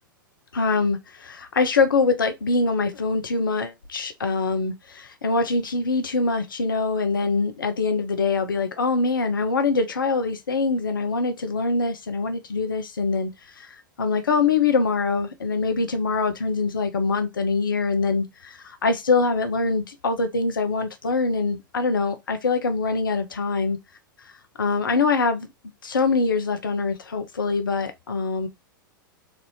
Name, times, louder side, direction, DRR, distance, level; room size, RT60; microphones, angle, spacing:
voice 1, 0.5-13.3 13.6-13.7 14.0-23.8 24.6-25.5 25.8-28.5, left 4 dB, 70° left, 0.8 m, -24 dB
4.1 x 2.7 x 3.2 m
figure-of-eight pair, 95°, 11 cm